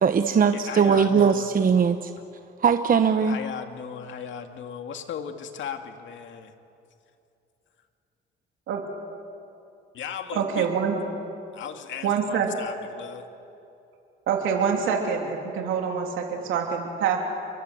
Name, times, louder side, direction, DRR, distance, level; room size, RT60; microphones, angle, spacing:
voice 1, 0.0-2.1 2.6-3.4, right 6 dB, 45° right, 8 dB, 1.1 m, -20 dB
voice 2, 0.5-1.5 3.2-6.5 9.9-10.7 11.5-13.3, left 8 dB, 70° left, 6 dB, 2.2 m, -36 dB
voice 3, 10.3-11.0 12.0-12.5 14.3-17.2, right 7 dB, 90° right, 1 dB, 3.0 m, -25 dB
29.5 x 23.5 x 7.9 m, 2.7 s
cardioid pair, 90°, 20 cm